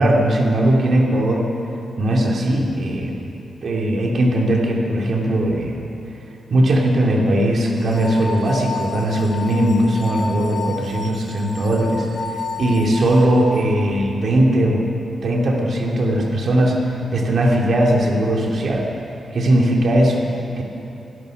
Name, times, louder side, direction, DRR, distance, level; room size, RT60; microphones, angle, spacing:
voice 1, 0.0-1.5 2.0-3.1 3.6-5.8 6.5-14.8 15.2-18.9 19.3-20.3 20.6-20.7, right 1 dB, 55° right, -1 dB, 3.0 m, -19 dB
sound 1, 7.8-13.6, left 4 dB, 45° left, 3.8 m, -31 dB
25.5 x 19.5 x 6.6 m, 2.9 s
wide cardioid pair, 135°, 0 cm